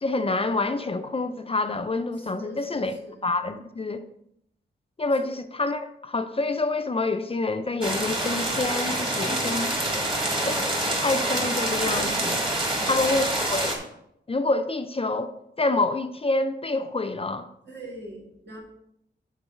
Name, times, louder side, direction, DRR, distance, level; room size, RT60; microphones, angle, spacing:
voice 1, 0.0-3.0 3.2-4.0 5.0-9.8 10.4-10.6 11.0-12.4 12.9-13.8 14.3-17.5, left 2 dB, 30° left, 0.4 m, -27 dB
voice 2, 2.2-3.1 12.7-13.5 17.7-18.6, right 1 dB, 65° right, 2.1 m, -43 dB
sound 1, 7.8-13.8, right 1 dB, 25° right, 1.7 m, -26 dB
6.9 x 4.0 x 5.5 m
wide cardioid pair, 100°, 19 cm